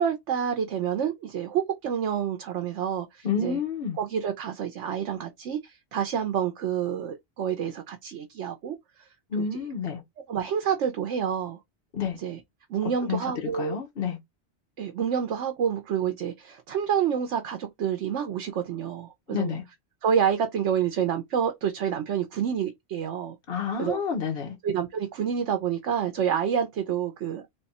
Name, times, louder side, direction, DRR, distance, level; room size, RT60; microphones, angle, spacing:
voice 1, 0.0-3.6 4.0-9.1 9.3-9.4 10.3-11.6 12.2-12.4 12.7-13.8 14.8-19.6 20.0-23.4 23.8-24.0 24.6-27.4, right 8 dB, 80° right, 1.0 m, -28 dB
voice 2, 3.2-4.0 9.3-10.0 11.9-12.2 12.8-13.2 13.5-14.2 19.3-19.6 23.5-24.6, left 6 dB, 55° left, 1.1 m, -29 dB
3.5 x 2.3 x 4.0 m
omnidirectional pair, 1.2 m